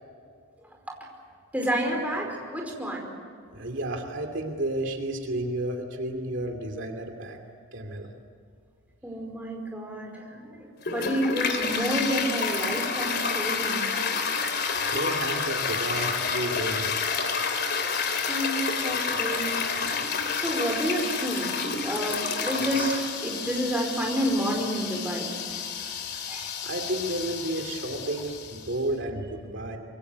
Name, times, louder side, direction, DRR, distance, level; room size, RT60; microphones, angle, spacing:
voice 1, 1.5-3.1 9.0-13.9 18.3-19.5 20.4-21.5 21.8-25.6 26.3-26.5, right 1 dB, 5° right, 0 dB, 5.0 m, -29 dB
voice 2, 3.5-7.4 7.7-8.1 14.4-16.9 26.6-29.8, right 1 dB, 60° right, 4 dB, 2.8 m, -32 dB
Toilet flush, 10.8-28.7, left 5 dB, 50° left, 2.9 m, -29 dB
26.0 x 23.0 x 8.2 m, 2.2 s
head